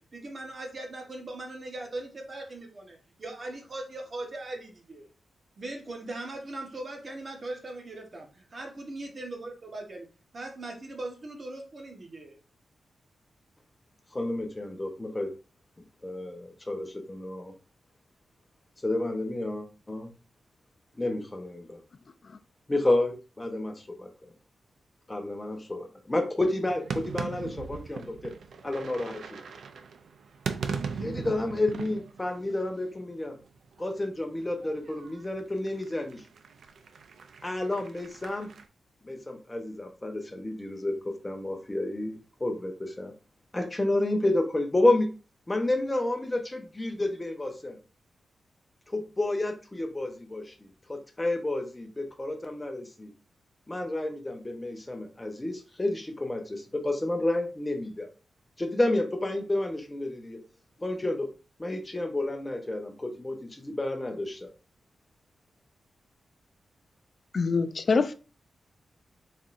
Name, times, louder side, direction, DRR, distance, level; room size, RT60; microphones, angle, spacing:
voice 1, 0.1-5.1 5.6-10.1 10.3-12.4, right 2 dB, 40° right, 1.1 m, -39 dB
voice 2, 14.1-15.3 16.0-17.5 18.8-20.1 21.0-21.8 22.7-24.1 25.1-28.3 28.6-29.4 31.0-33.4 33.8-36.2 37.4-38.5 39.0-43.1 43.5-45.1 45.5-47.8 48.9-53.1 53.7-58.1 58.6-60.4 60.8-61.3 61.6-64.5, left 2 dB, 15° left, 0.8 m, -30 dB
sound 1, 26.7-33.1 33.4-38.6, right 5 dB, 80° right, 0.5 m, -39 dB
voice 3, 67.3-68.1, left 4 dB, 45° left, 0.4 m, -24 dB
4.2 x 3.6 x 2.5 m
wide cardioid pair, 140°, 0 cm